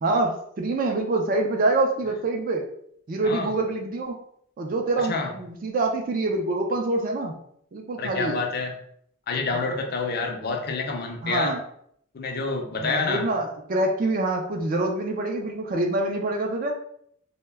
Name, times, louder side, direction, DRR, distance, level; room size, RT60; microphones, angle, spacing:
voice 1, 0.0-2.7 3.1-4.2 4.6-7.3 7.7-8.4 11.2-11.6 12.8-16.8, right 2 dB, 40° right, 3 dB, 0.3 m, -25 dB
voice 2, 8.0-8.7 9.3-11.5 12.1-13.2, left 4 dB, 45° left, 2 dB, 0.4 m, -27 dB
2.1 x 2.1 x 3.3 m, 0.69 s
head